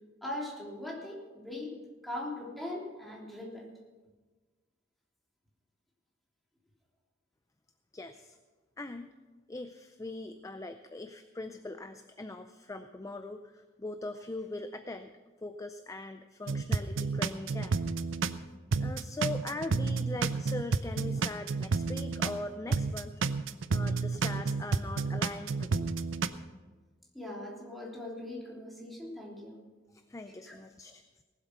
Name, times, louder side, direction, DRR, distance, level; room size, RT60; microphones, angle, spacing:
voice 1, 0.2-1.7 2.0-3.7 27.1-29.6 30.5-30.6, left 1 dB, ahead, -4 dB, 3.2 m, -40 dB
voice 2, 7.9-8.4 8.8-9.1 9.5-15.1 15.4-17.8 18.8-23.4 23.7-25.9 30.1-31.0, left 2 dB, 15° left, 8 dB, 0.5 m, -41 dB
sound 1, 16.5-18.4 18.7-22.4 22.7-26.3, right 4 dB, 80° right, 0.6 m, -30 dB
18.5 x 8.1 x 6.0 m, 1.3 s
head